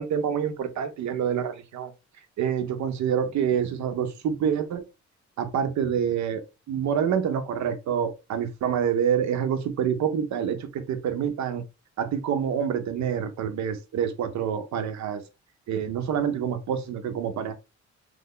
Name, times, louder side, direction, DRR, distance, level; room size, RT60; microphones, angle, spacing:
voice 1, 0.0-1.9 2.4-4.8 5.4-11.6 12.0-15.2 15.7-17.5, right 8 dB, 65° right, 0.8 m, -27 dB
3.2 x 2.1 x 3.7 m
cardioid pair, 90°, 30 cm